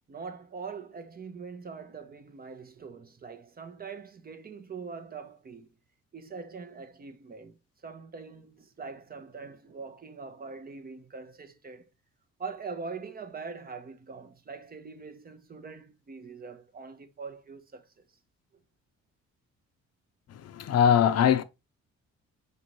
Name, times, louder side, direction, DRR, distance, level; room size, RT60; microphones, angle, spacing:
voice 1, 0.1-5.7 6.1-7.6 7.8-11.9 12.4-17.9, right 5 dB, 30° right, 0.6 m, -42 dB
voice 2, 20.3-21.4, left 8 dB, 55° left, 0.5 m, -22 dB
5.1 x 2.6 x 3.0 m
cardioid pair, 90°, 30 cm